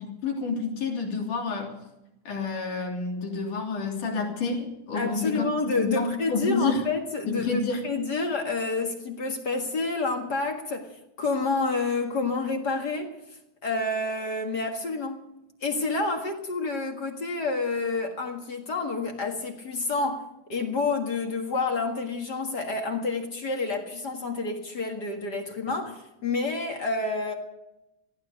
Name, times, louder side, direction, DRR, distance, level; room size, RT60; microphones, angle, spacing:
voice 1, 0.0-1.7 2.3-6.8 7.3-7.9, left 4 dB, 75° left, 4.8 m, -29 dB
voice 2, 4.9-13.2 13.6-15.2 15.6-27.3, left 3 dB, 40° left, 1.9 m, -29 dB
19.0 x 15.0 x 5.1 m
omnidirectional pair, 3.6 m